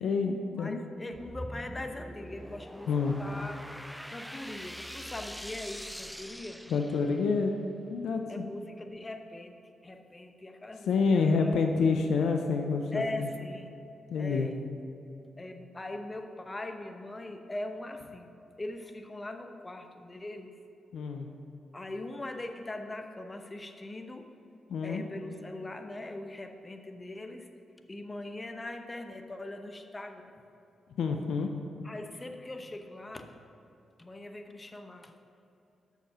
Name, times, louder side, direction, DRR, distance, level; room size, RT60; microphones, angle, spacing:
voice 1, 0.0-0.8 2.9-3.1 6.7-7.6 7.9-8.5 10.9-13.3 14.1-14.5 20.9-21.3 24.7-25.0 31.0-31.5, left 4 dB, 70° left, 4 dB, 0.6 m, -28 dB
voice 2, 0.5-3.6 4.1-6.6 8.3-11.5 12.9-13.7 14.2-14.6 15.4-18.3 18.6-20.6 21.7-24.3 24.8-27.5 27.9-30.4 31.8-33.3 34.0-35.1, left 2 dB, 25° left, 6 dB, 0.9 m, -41 dB
sound 1, 1.1-7.4, equal, ahead, 0.4 m, -44 dB
8.1 x 6.5 x 5.8 m, 2.9 s
hypercardioid pair, 40°, 0 cm